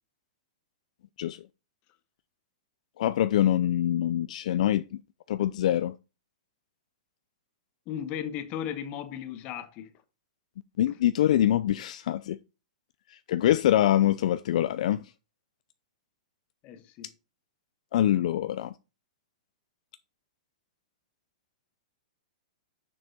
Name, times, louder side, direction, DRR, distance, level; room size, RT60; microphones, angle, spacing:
voice 1, 3.0-5.0 5.3-5.9 10.8-12.4 13.1-15.0 17.9-18.7, left 12 dB, 65° left, 0.4 m, -24 dB
voice 2, 7.9-9.9 16.6-17.1, left 9 dB, 35° left, 1.2 m, -36 dB
6.9 x 6.2 x 4.2 m
hypercardioid pair, 140°, 4 cm